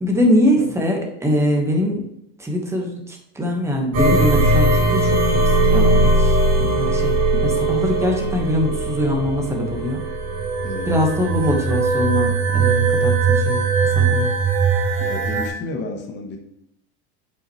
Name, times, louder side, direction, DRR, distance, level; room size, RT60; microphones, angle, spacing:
voice 1, 0.0-2.0 2.4-7.2 7.4-10.0 10.9-14.3, left 1 dB, 10° right, 1 dB, 1.3 m, -22 dB
sound 1, 3.9-15.5, right 3 dB, 45° right, 2.4 m, -19 dB
voice 2, 10.6-10.9 15.0-16.4, left 2 dB, 30° left, 3 dB, 1.1 m, -31 dB
7.5 x 5.5 x 3.1 m, 0.80 s
supercardioid pair, 135°, 34 cm